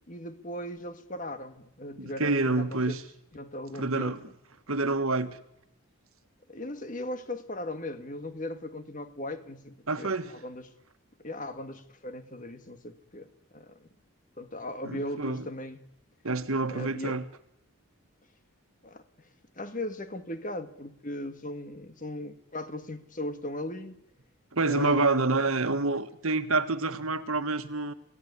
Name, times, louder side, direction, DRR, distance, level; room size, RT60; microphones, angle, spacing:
voice 1, 0.1-3.0 3.3-4.2 6.5-10.7 11.2-13.9 14.4-15.8 16.7-17.2 18.8-19.3 19.6-24.0 24.7-25.4, left 1 dB, 35° left, 1.8 m, -38 dB
voice 2, 2.0-3.0 3.8-4.2 4.7-5.4 9.9-10.3 14.8-15.4 16.2-17.2 24.5-27.9, right 3 dB, 80° right, 1.6 m, -27 dB
28.5 x 17.0 x 9.6 m
head